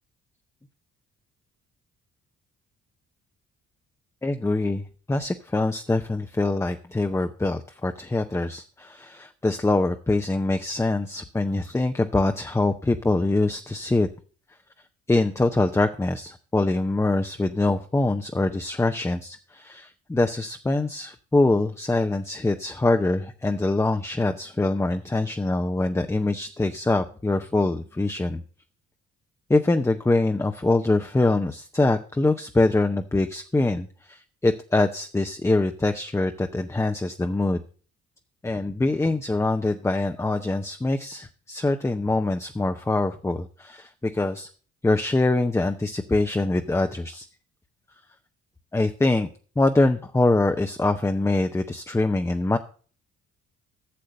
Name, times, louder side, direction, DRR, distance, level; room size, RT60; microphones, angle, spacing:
voice 1, 4.2-14.1 15.1-28.4 29.5-37.6 38.4-44.5 44.8-47.3 48.7-49.3 49.6-52.6, left 2 dB, 10° left, 7 dB, 0.6 m, -24 dB
8.7 x 6.6 x 6.5 m, 0.41 s
cardioid pair, 90°, 30 cm